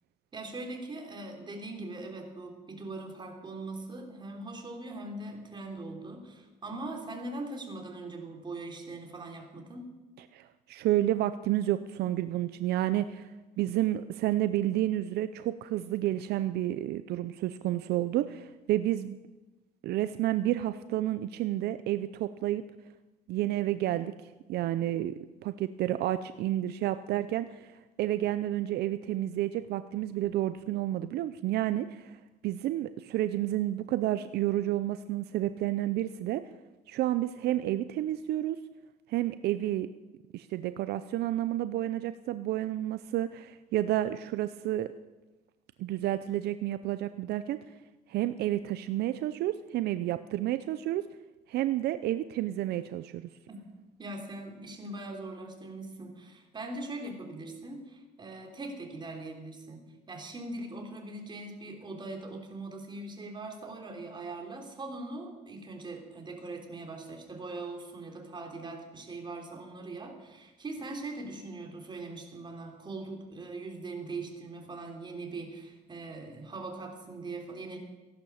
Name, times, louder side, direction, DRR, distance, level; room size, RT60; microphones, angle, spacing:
voice 1, 0.3-9.9 53.5-53.6 54.0-59.8 60.1-77.8, right 2 dB, 25° right, 2 dB, 3.4 m, -41 dB
voice 2, 10.3-13.3 13.6-19.2 19.8-22.6 23.3-24.1 24.5-25.1 25.4-27.7 28.0-32.1 32.4-36.4 36.9-38.6 39.1-39.9 40.3-44.9 45.8-47.6 48.1-51.1 51.5-53.3, right 13 dB, 75° right, 12 dB, 0.6 m, -30 dB
15.5 x 11.5 x 7.1 m, 1.1 s
cardioid pair, 110°, 17 cm